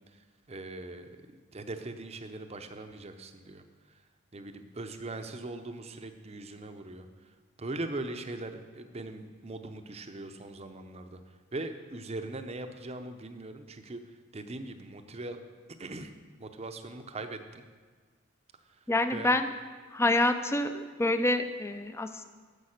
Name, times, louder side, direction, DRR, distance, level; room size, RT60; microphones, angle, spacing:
voice 1, 0.5-1.1 1.5-3.6 4.3-7.1 7.6-11.2 11.5-14.0 14.3-15.4 15.8-16.1 16.4-17.6 19.1-19.3, right 2 dB, 30° right, 7 dB, 0.6 m, -40 dB
voice 2, 18.9-19.5 19.9-22.2, left 2 dB, 10° left, 9 dB, 0.4 m, -27 dB
9.9 x 6.9 x 6.5 m, 1.5 s
head